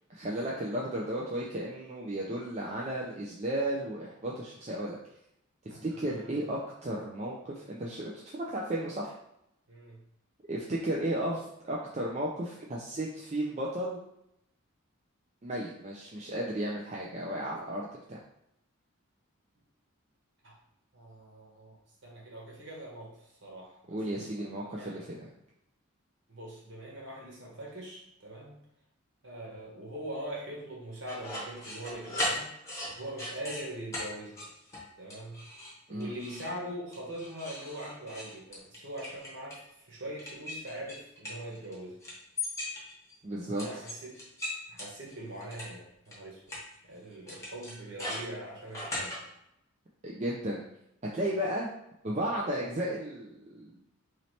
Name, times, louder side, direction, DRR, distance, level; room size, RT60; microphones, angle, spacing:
voice 1, 0.1-5.0 5.6-9.1 10.5-14.0 15.4-18.2 23.9-25.3 35.9-36.1 43.2-43.7 50.0-50.6 51.1-51.7 52.0-53.8, right 1 dB, 30° right, -4 dB, 0.4 m, -34 dB
voice 2, 5.7-6.3 9.7-10.0 20.4-20.6 20.9-24.4 24.8-25.0 26.3-28.5 29.2-32.5 33.0-34.4 35.0-35.4 35.9-42.0 43.6-44.2 44.7-46.4 46.9-49.3, right 1 dB, 60° right, -3 dB, 1.2 m, -42 dB
sound 1, 31.1-33.6 33.9-34.1 34.4-34.8 35.1-35.7 36.0-36.5 36.9-39.6 40.2-41.7 42.0-43.1 43.6-45.7 46.1-46.2 46.5-46.6 47.3-49.2, left 1 dB, 15° left, 0.9 m, -37 dB
3.1 x 2.8 x 4.1 m, 0.79 s
head